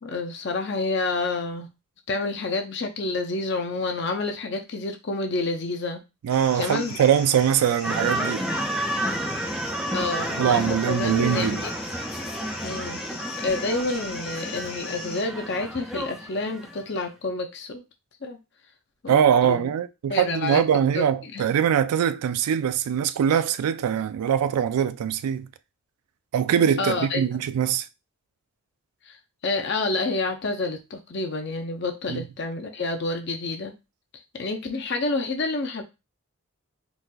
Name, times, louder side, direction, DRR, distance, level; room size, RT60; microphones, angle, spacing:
voice 1, 0.0-1.7 2.1-6.0 6.5-7.0 9.8-11.7 12.6-17.8 18.2-18.4 19.0-19.7 20.1-20.6 20.9-21.4 26.8-27.2 29.0-29.2 29.4-33.7 34.1-35.8, left 3 dB, 50° left, 0.6 m, -29 dB
voice 2, 6.2-8.4 10.4-11.6 19.1-25.5 26.3-27.9 32.1-32.2, right 8 dB, 90° right, 0.3 m, -22 dB
sound 1, 6.3-15.2, left 3 dB, 75° left, 1.1 m, -39 dB
sound 2, 7.8-16.8, right 1 dB, ahead, 0.3 m, -31 dB
4.1 x 2.4 x 2.3 m
head